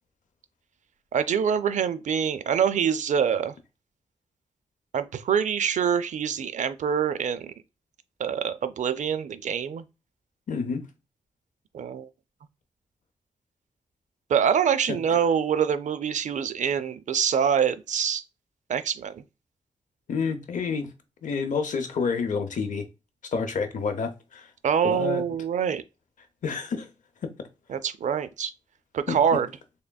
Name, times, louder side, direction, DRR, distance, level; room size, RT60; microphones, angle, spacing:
voice 1, 1.1-3.5 4.9-7.5 8.2-9.8 11.7-12.1 14.3-18.2 18.7-19.2 24.6-25.8 27.7-28.5 28.9-29.5, right 7 dB, 75° right, 0.4 m, -25 dB
voice 2, 10.5-10.8 20.1-20.9 21.2-22.8 23.3-24.5 24.8-25.2 26.4-26.9 29.1-29.2, left 5 dB, 80° left, 0.7 m, -28 dB
3.6 x 3.4 x 2.2 m
wide cardioid pair, 170°, 13 cm